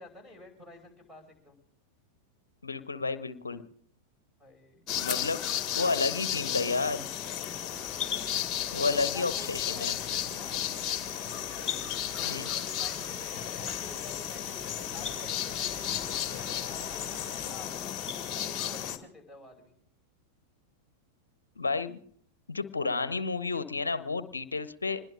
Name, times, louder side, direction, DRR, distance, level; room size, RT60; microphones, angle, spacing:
voice 1, 0.0-1.6 4.4-4.9 8.7-10.6 12.1-17.7 18.2-19.7, left 2 dB, ahead, 5 dB, 5.4 m, -50 dB
voice 2, 2.6-3.6 5.0-5.4 5.8-7.1 8.7-9.9 12.2-12.5 21.6-22.0 22.5-25.0, left 4 dB, 75° left, 14 dB, 0.8 m, -31 dB
sound 1, 4.9-19.0, left 10 dB, 30° left, 1.6 m, -33 dB
sound 2, 7.7-17.5, right 2 dB, 45° right, 6.1 m, -50 dB
25.5 x 20.5 x 2.5 m, 0.62 s
figure-of-eight pair, 90°, 0 cm